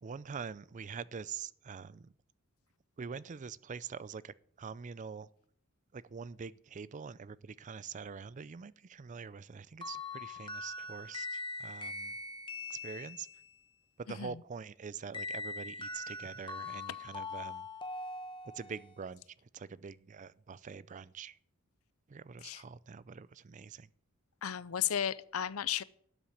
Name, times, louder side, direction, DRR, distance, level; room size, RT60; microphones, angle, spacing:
voice 1, 0.0-2.1 3.0-5.3 5.9-12.1 12.7-13.3 14.0-17.7 18.5-19.2 19.5-21.4 22.1-23.9, right 6 dB, 35° right, 0.4 m, -45 dB
sound 1, 9.8-13.5 15.1-18.9, left 3 dB, 25° left, 1.4 m, -42 dB
voice 2, 14.1-14.4 22.4-22.6 24.4-25.8, left 10 dB, 90° left, 0.6 m, -34 dB
12.5 x 7.3 x 8.4 m
head